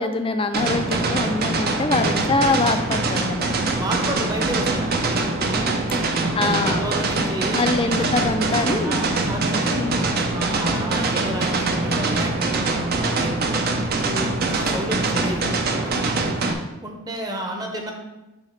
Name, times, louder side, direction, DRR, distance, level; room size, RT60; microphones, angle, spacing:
voice 1, 0.0-3.6 6.3-6.9 7.5-9.0 9.7-10.0, left 3 dB, 25° left, 8 dB, 0.4 m, -24 dB
sound 1, 0.5-16.5, right 3 dB, 45° right, 0.6 m, -23 dB
voice 2, 3.7-8.0 8.8-9.9 10.3-13.4 13.8-15.5 15.7-16.2 16.8-17.9, right 1 dB, 20° right, 2 dB, 0.8 m, -32 dB
Bowed string instrument, 8.3-13.4, left 2 dB, 55° left, 0.8 m, -36 dB
7.0 x 2.9 x 5.8 m, 1.0 s
head